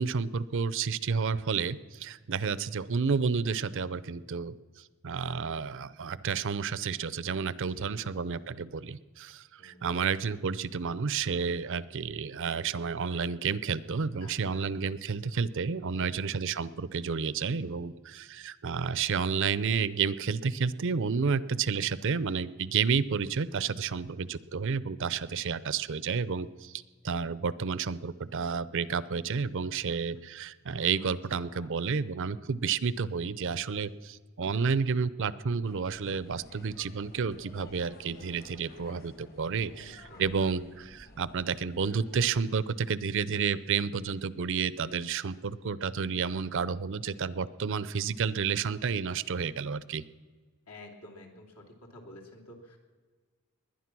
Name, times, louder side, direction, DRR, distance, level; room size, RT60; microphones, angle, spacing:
voice 1, 0.0-4.5 5.0-26.7 27.0-50.0, right 5 dB, 60° right, 18 dB, 0.5 m, -31 dB
voice 2, 7.7-8.1 9.6-10.0 14.2-14.6 16.0-16.3 31.4-31.7 39.7-40.7 50.7-51.6 51.9-52.8, left 1 dB, 75° left, 1 dB, 3.0 m, -51 dB
sound 1, 35.6-42.3, left 1 dB, 40° left, 1.7 m, -54 dB
21.0 x 9.9 x 6.1 m, 1.4 s
head